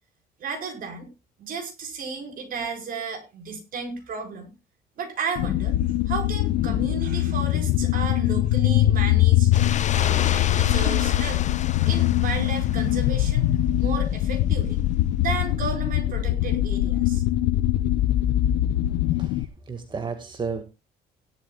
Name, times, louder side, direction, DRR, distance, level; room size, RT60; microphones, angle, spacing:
voice 1, 0.4-1.1 1.4-4.5 5.0-5.7 6.1-9.5 9.9-13.5 13.8-14.8 15.2-17.2, right 5 dB, 55° right, 5 dB, 4.9 m, -33 dB
sound 1, 5.4-19.5, left 13 dB, 90° left, 0.6 m, -22 dB
sound 2, 9.5-13.3, left 9 dB, 45° left, 0.9 m, -31 dB
voice 2, 19.2-20.6, right 5 dB, 30° right, 8 dB, 1.8 m, -33 dB
17.0 x 12.0 x 2.3 m, 0.26 s
cardioid pair, 110°, 17 cm